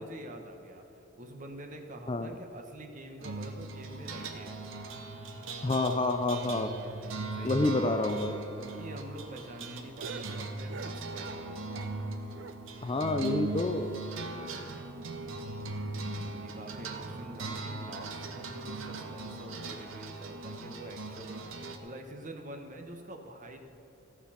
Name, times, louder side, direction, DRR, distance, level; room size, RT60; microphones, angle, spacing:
voice 1, 0.0-4.6 6.5-7.8 8.6-11.7 14.4-14.7 15.9-21.5 21.8-23.6, right 1 dB, 40° right, 4 dB, 1.0 m, -46 dB
sound 1, 3.2-21.8, right 3 dB, 80° right, 0.9 m, -39 dB
voice 2, 5.6-6.7 7.4-8.3 12.8-13.9, left 2 dB, 25° left, 7 dB, 0.4 m, -28 dB
sound 2, 8.6-12.0 12.3-14.3 14.6-14.7 15.0-15.1 15.5-15.6 16.2-16.5 17.3-17.4, right 4 dB, 60° right, 0.5 m, -48 dB
15.0 x 6.9 x 5.7 m, 2.8 s
head